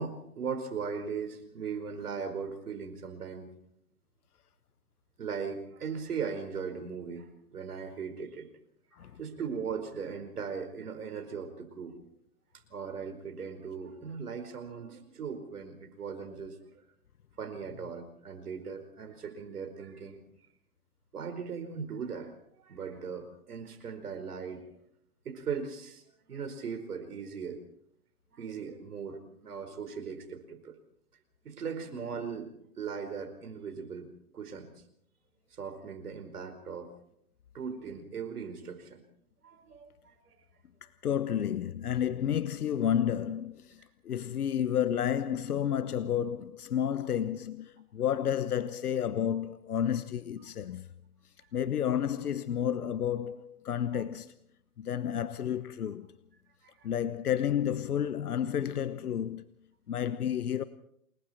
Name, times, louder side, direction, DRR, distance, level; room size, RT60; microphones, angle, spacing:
voice 1, 0.0-3.5 5.2-8.5 9.2-12.0 12.7-16.6 17.4-20.2 21.1-24.7 25.2-27.6 28.3-30.8 31.4-34.7 35.6-36.9 37.5-39.0 39.4-40.3 44.1-44.2 53.9-54.0 56.6-56.9, right 6 dB, 75° right, 4.9 m, -39 dB
voice 2, 41.0-50.9 51.5-54.3 54.8-56.1 56.8-59.4 59.9-60.6, left 9 dB, 75° left, 1.2 m, -31 dB
28.5 x 21.5 x 4.5 m
hypercardioid pair, 145°, 45 cm